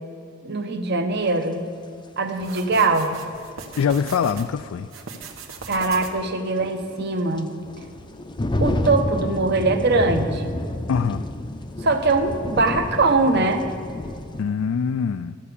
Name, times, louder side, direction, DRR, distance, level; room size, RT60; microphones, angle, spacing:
voice 1, 0.4-1.6 2.2-3.2 5.7-7.5 8.6-10.6 11.8-13.7, right 3 dB, 55° right, 7 dB, 0.9 m, -22 dB
sound 1, 1.4-1.5 4.0-4.1 4.6-4.7 6.2-14.4, left 1 dB, 25° left, 0.5 m, -29 dB
sound 2, 2.4-4.5 4.9-6.4, right 5 dB, 85° right, 1.2 m, -39 dB
voice 2, 3.8-4.9 10.9-11.2 14.4-15.4, left 6 dB, 85° left, 11 dB, 0.3 m, -23 dB
12.5 x 6.8 x 8.3 m, 2.4 s
head